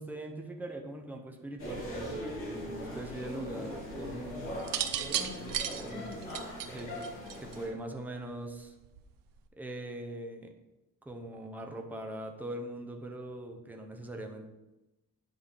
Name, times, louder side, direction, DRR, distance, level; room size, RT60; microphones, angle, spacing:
voice 1, 0.0-4.5 5.7-6.4 6.7-8.7 9.6-10.5 11.0-14.5, right 1 dB, 5° right, 3 dB, 0.6 m, -42 dB
sound 1, 1.6-7.7, equal, 35° left, 2.9 m, -40 dB
sound 2, 4.6-7.7 8.8-9.2, right 10 dB, 70° right, 0.7 m, -34 dB
9.8 x 5.4 x 3.4 m, 1.0 s
cardioid pair, 165°, 35 cm